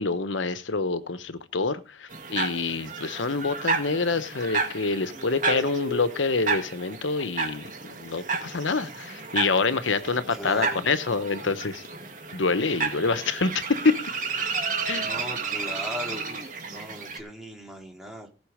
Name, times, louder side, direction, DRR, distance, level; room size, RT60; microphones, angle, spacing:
voice 1, 0.0-11.8 12.3-13.9 14.9-15.1, left 4 dB, 85° left, 13 dB, 1.0 m, -26 dB
sound 1, 2.1-17.2, right 4 dB, 40° right, 2.1 m, -32 dB
voice 2, 10.0-10.9 14.9-16.4 16.7-18.3, equal, ahead, 0 dB, 2.8 m, -38 dB
17.5 x 6.2 x 5.0 m, 0.33 s
head